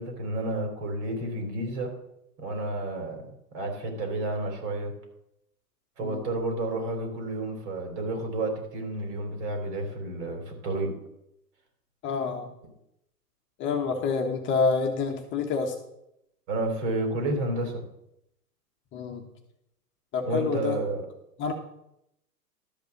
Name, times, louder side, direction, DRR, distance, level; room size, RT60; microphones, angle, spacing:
voice 1, 0.0-1.9 2.4-4.9 6.0-11.0 16.5-17.8 20.2-21.0, right 2 dB, 45° right, 4 dB, 3.7 m, -31 dB
voice 2, 12.0-12.5 13.6-15.7 18.9-19.3 20.1-20.8 21.4-21.5, left 4 dB, 25° left, 2 dB, 1.3 m, -27 dB
12.5 x 5.4 x 7.2 m, 0.81 s
hypercardioid pair, 120°, 47 cm